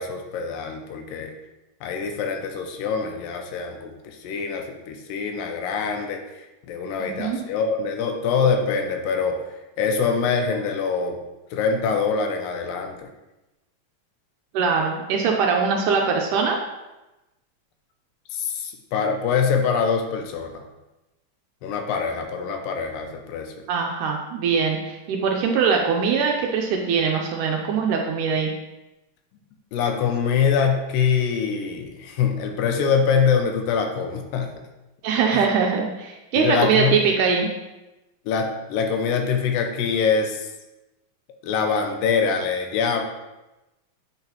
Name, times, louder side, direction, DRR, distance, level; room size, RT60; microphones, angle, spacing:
voice 1, 0.0-1.3 1.8-6.2 6.7-9.4 9.8-11.2 11.5-13.0 18.3-20.5 21.6-23.5 29.7-34.5 35.3-35.5 36.4-36.9 38.3-40.5 41.4-43.0, left 6 dB, 85° left, 4 dB, 2.3 m, -24 dB
voice 2, 7.0-7.4 14.5-16.6 23.7-28.5 35.0-37.5, right 5 dB, 80° right, 1 dB, 1.9 m, -22 dB
8.6 x 3.9 x 2.8 m, 1.0 s
omnidirectional pair, 4.0 m